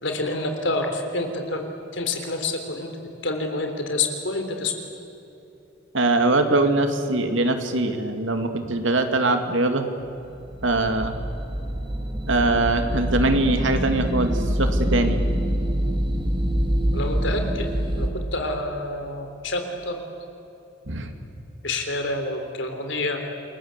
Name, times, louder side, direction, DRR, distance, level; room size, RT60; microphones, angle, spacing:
voice 1, 0.0-2.9 3.2-4.7 16.9-20.0 21.6-23.2, left 2 dB, 65° left, 5 dB, 3.6 m, -28 dB
voice 2, 5.9-9.9 10.6-11.1 12.3-15.2 20.9-21.1, right 2 dB, 70° right, 6 dB, 2.5 m, -22 dB
sound 1, 10.3-18.1, equal, 25° right, 1.9 m, -25 dB
29.0 x 21.5 x 8.4 m, 2.9 s
head